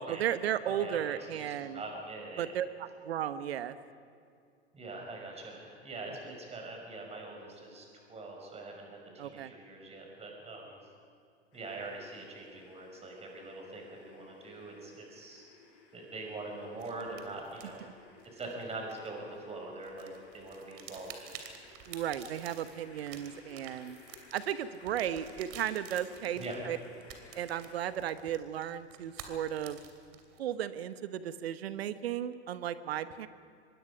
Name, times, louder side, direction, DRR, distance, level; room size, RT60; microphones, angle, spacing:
voice 1, 0.0-1.8 2.4-3.8 6.3-6.4 9.2-9.5 21.9-24.0 24.3-26.8 27.3-29.8 30.4-33.3, right 10 dB, 60° right, 13 dB, 1.1 m, -35 dB
voice 2, 0.6-2.5 4.7-10.8 11.5-15.5 15.9-17.8 18.3-21.3 26.4-26.6, right 2 dB, 20° right, 1 dB, 5.8 m, -43 dB
sound 1, 11.5-27.9, left 4 dB, 40° left, 6.7 m, -59 dB
sound 2, 16.8-19.5 19.8-30.4, right 8 dB, 40° right, 2.9 m, -51 dB
25.5 x 21.5 x 5.1 m, 2.4 s
figure-of-eight pair, 95°, 34 cm